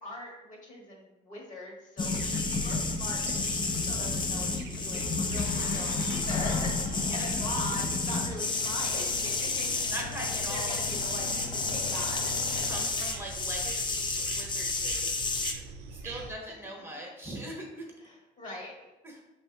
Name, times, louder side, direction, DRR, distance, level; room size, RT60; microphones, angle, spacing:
voice 1, 0.0-12.8 16.0-16.5 18.0-18.7, left 1 dB, 45° left, -1 dB, 1.4 m, -42 dB
sound 1, 2.0-15.5, left 3 dB, 25° left, 0.5 m, -31 dB
sound 2, 2.0-16.3, right 5 dB, 80° right, 0.5 m, -45 dB
sound 3, 3.7-12.8, left 5 dB, 75° left, 0.5 m, -42 dB
voice 2, 9.9-10.8 12.6-15.4 15.9-17.8 19.0-19.2, right 1 dB, 15° right, -1 dB, 0.9 m, -41 dB
5.3 x 3.3 x 2.7 m, 1.0 s
cardioid pair, 110°, 17 cm